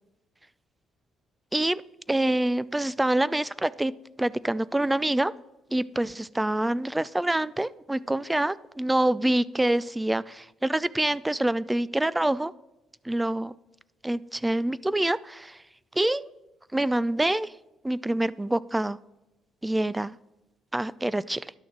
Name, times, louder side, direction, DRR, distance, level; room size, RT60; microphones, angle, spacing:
voice 1, 2.1-3.9 4.2-5.3 5.7-12.5 13.0-13.5 14.0-15.6 16.0-16.3 16.7-17.5 17.8-19.0 19.6-20.2 20.7-21.5, right 1 dB, 10° right, 19 dB, 0.3 m, -26 dB
10.5 x 6.2 x 4.6 m, 0.96 s
supercardioid pair, 65°, 0 cm